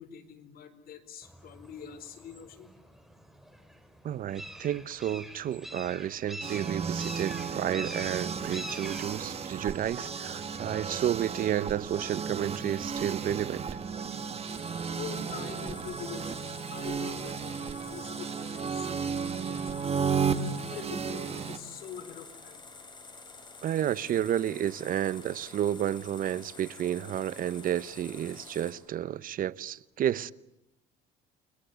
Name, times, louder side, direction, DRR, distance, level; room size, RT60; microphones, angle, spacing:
voice 1, 0.0-2.7 14.9-16.3 16.7-20.3 20.7-22.6, left 7 dB, 60° left, 4.5 m, -44 dB
sound 1, 1.2-15.0, right 1 dB, ahead, 4.1 m, -47 dB
voice 2, 4.0-13.7 23.6-30.3, right 11 dB, 55° right, 0.9 m, -31 dB
sound 2, 6.4-21.6, right 6 dB, 35° right, 1.8 m, -34 dB
sound 3, 14.5-28.7, left 3 dB, 25° left, 7.9 m, -49 dB
30.0 x 23.0 x 8.2 m
cardioid pair, 110°, 17 cm